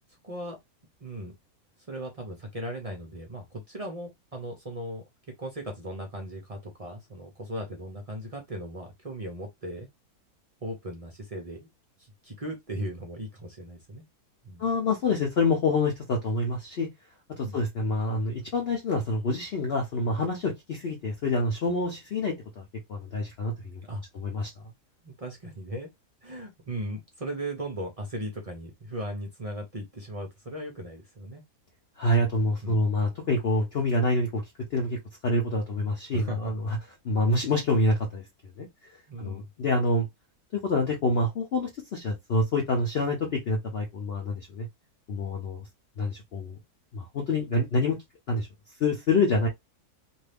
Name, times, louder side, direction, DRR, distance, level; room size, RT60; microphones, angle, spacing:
voice 1, 0.2-0.6 1.0-1.3 1.9-5.0 5.4-9.9 10.6-11.7 12.0-14.0 14.4-14.7 17.4-17.6 23.8-24.0 25.0-25.9 26.2-31.4 32.3-32.8 36.1-36.5 39.1-39.5, right 1 dB, 40° right, 0.5 m, -37 dB
voice 2, 14.6-16.9 17.4-22.6 22.9-23.8 24.1-24.5 32.0-34.4 34.7-36.8 37.0-38.2 38.6-38.7 39.2-40.1 40.5-44.7 45.1-45.7 46.0-46.6 46.9-48.0 48.3-48.5 48.8-49.5, left 2 dB, 55° left, 0.7 m, -27 dB
2.6 x 2.6 x 3.3 m
omnidirectional pair, 1.6 m